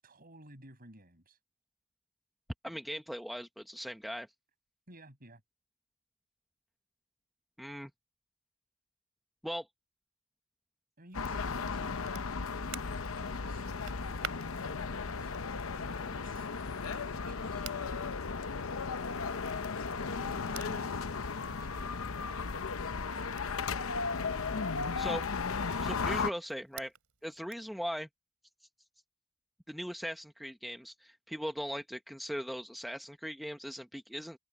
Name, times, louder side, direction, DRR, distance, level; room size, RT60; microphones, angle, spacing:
voice 1, 0.0-1.4 4.9-5.4 11.0-14.2 14.6-15.3 15.7-16.5 16.9-17.6 20.1-22.5 24.1-25.1 25.5-25.7, right 1 dB, 45° right, 7.9 m, -55 dB
voice 2, 2.6-4.3 7.6-7.9 9.4-9.7 25.0-25.2 25.8-26.9 27.2-28.1 29.7-34.4, equal, ahead, 0.9 m, -39 dB
sound 1, 11.1-26.3, left 5 dB, 75° left, 0.8 m, -35 dB
Crackle, 11.1-27.7, right 8 dB, 85° right, 3.4 m, -52 dB
head